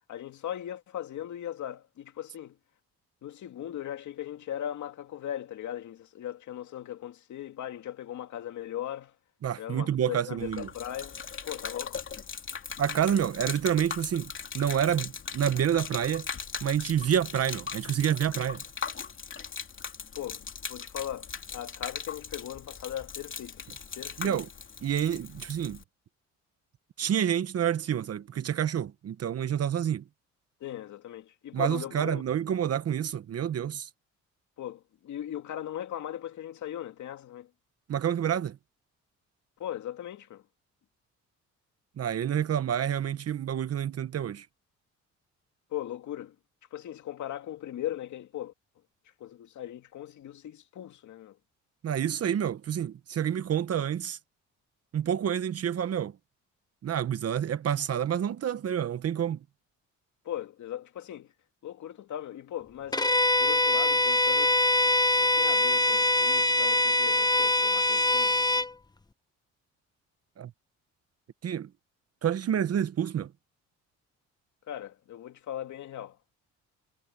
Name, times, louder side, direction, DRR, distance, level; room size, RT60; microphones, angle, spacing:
voice 1, 0.1-2.6 3.2-9.1 9.6-12.0 20.1-23.6 23.9-24.4 30.6-32.2 34.6-37.5 39.6-40.4 45.7-46.3 46.7-48.5 49.2-51.4 60.2-61.3 61.6-64.6 65.2-68.4 74.7-76.2, left 11 dB, 70° left, 2.5 m, -38 dB
voice 2, 9.4-10.7 12.8-16.3 16.6-18.6 24.2-24.5 24.8-25.8 27.0-30.0 31.5-33.9 37.9-38.6 42.0-44.4 51.8-54.2 54.9-56.1 56.8-59.4 70.4-70.5 71.4-71.7 72.2-73.3, right 9 dB, 55° right, 1.1 m, -28 dB
Gurgling / Liquid, 10.4-25.8, left 6 dB, 40° left, 2.9 m, -39 dB
Bowed string instrument, 62.9-68.7, left 1 dB, 15° left, 0.9 m, -23 dB
cardioid pair, 90°, 30 cm